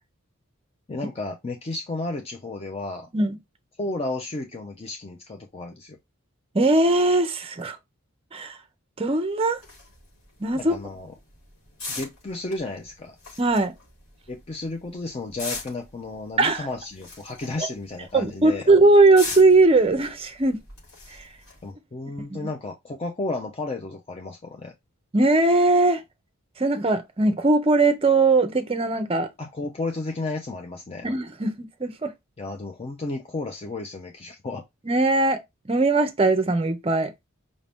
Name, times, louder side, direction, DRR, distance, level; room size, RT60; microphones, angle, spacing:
voice 1, 0.9-3.1 3.8-6.0 10.5-11.1 11.9-13.1 14.3-18.7 21.6-24.7 29.4-31.1 32.4-34.6, left 2 dB, 25° left, 0.5 m, -33 dB
voice 2, 6.5-7.8 8.3-8.5 9.0-9.6 10.4-10.7 13.4-13.7 16.4-16.7 17.6-17.7 18.1-20.6 22.2-22.5 25.1-26.0 26.6-29.3 31.0-32.1 34.9-35.4 35.7-37.3, right 2 dB, 25° right, 0.5 m, -20 dB
sound 1, 9.6-21.7, left 3 dB, 80° left, 3.3 m, -41 dB
5.1 x 2.6 x 3.4 m
head